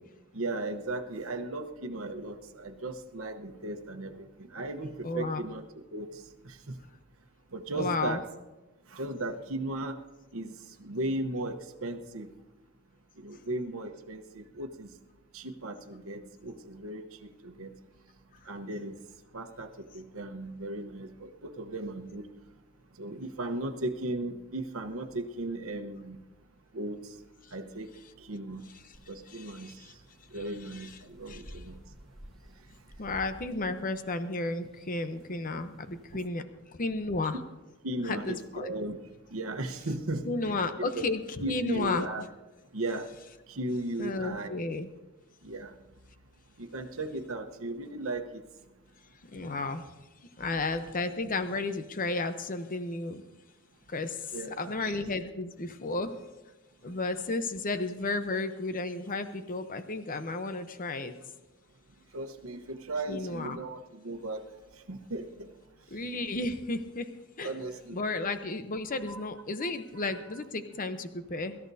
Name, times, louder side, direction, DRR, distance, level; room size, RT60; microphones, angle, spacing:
voice 1, 0.3-4.2 4.5-6.1 6.4-6.8 7.5-8.2 8.9-10.0 10.3-10.5 10.8-11.6 11.8-12.3 13.2-14.9 15.3-17.7 18.5-19.0 19.3-19.7 19.9-22.3 23.0-26.2 26.7-27.0 27.5-27.9 28.2-28.6 29.1-29.7 30.3-31.8 37.8-39.0 39.3-40.2 40.8-41.0 41.4-42.3 42.7-43.1 43.5-44.5 45.4-45.7 46.6-48.4 54.3-54.9 62.1-64.4 64.9-65.5 67.4-68.0 69.1-69.2 69.6-69.7, right 2 dB, 85° right, 6 dB, 1.1 m, -36 dB
voice 2, 5.0-5.4 7.7-8.2 29.3-29.9 30.3-30.4 30.7-30.9 31.3-31.6 33.0-36.4 36.8-37.4 38.0-38.7 40.3-42.2 44.0-44.9 49.3-49.9 50.4-53.2 53.9-56.1 56.8-61.1 63.1-63.6 65.9-67.1 67.4-67.5 67.9-71.6, left 3 dB, 40° left, 9 dB, 0.8 m, -33 dB
sound 1, 28.9-36.2, equal, ahead, 1.0 m, -53 dB
23.5 x 13.5 x 2.7 m, 1.1 s
head